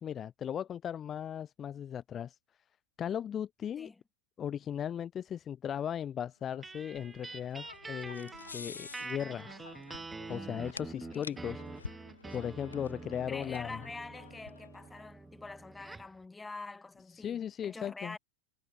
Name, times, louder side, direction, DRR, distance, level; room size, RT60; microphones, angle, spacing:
voice 1, 0.0-2.4 3.0-3.9 4.4-9.7 10.3-11.9 12.3-13.8 17.1-18.2, left 9 dB, 25° left, 1.7 m, -37 dB
sound 1, 6.5-15.0, left 5 dB, 75° left, 1.6 m, -50 dB
sound 2, 6.6-16.2, right 3 dB, 10° right, 1.8 m, -46 dB
voice 2, 13.3-18.2, left 3 dB, 10° left, 6.4 m, -46 dB
figure-of-eight pair, 90°, 0 cm